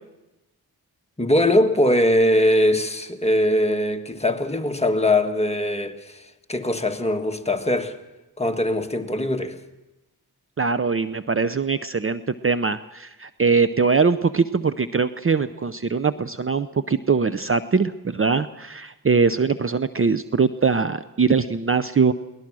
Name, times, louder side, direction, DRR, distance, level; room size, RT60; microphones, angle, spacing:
voice 1, 1.2-7.9 8.4-9.6, left 1 dB, 15° left, 4 dB, 1.6 m, -21 dB
voice 2, 10.6-22.1, right 5 dB, 35° right, 11 dB, 0.6 m, -22 dB
22.5 x 18.5 x 6.2 m, 1.0 s
cardioid pair, 70°, 38 cm